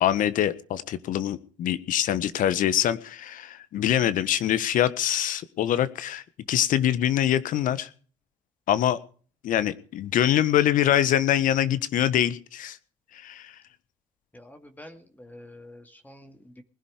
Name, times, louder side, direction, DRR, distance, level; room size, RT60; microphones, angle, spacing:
voice 1, 0.0-7.9 8.7-9.0 9.4-12.8 13.1-13.5, left 11 dB, 60° left, 15 dB, 1.5 m, -24 dB
voice 2, 14.3-16.6, left 1 dB, 10° left, 7 dB, 2.2 m, -47 dB
20.5 x 11.5 x 5.0 m, 0.42 s
hypercardioid pair, 60°, 16 cm